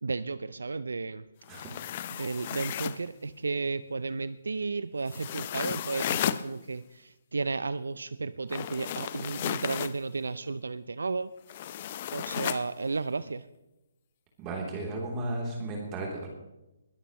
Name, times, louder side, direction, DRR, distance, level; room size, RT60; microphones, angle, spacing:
voice 1, 0.0-1.2 2.1-11.3 12.1-13.5, right 3 dB, 80° right, 15 dB, 0.5 m, -33 dB
sound 1, 1.4-3.1 5.1-6.4 8.5-10.0 11.5-12.7, left 11 dB, 40° left, 0.7 m, -34 dB
voice 2, 14.4-16.3, right 2 dB, 25° right, -1 dB, 3.3 m, -34 dB
21.0 x 13.5 x 3.1 m, 0.96 s
figure-of-eight pair, 140°, 0 cm